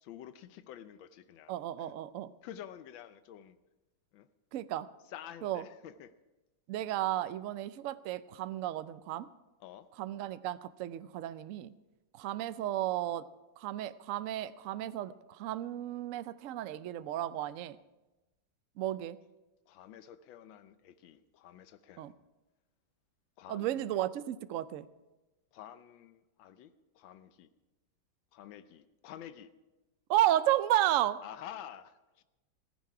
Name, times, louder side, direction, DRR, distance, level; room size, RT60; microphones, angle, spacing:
voice 1, 0.0-1.5 1.8-1.9 2.4-3.6 4.1-4.3 5.1-6.1 9.6-9.9 19.7-22.1 23.4-24.0 25.5-27.5 28.3-29.5 31.2-32.2, left 10 dB, 90° left, 12 dB, 1.5 m, -49 dB
voice 2, 1.5-2.3 4.5-4.9 5.4-5.6 6.7-9.3 10.0-11.7 12.1-13.2 13.6-17.8 18.8-19.2 22.0-22.1 23.5-24.9 30.1-31.2, right 13 dB, 80° right, 14 dB, 0.7 m, -33 dB
15.5 x 14.5 x 4.8 m, 1.1 s
omnidirectional pair, 2.0 m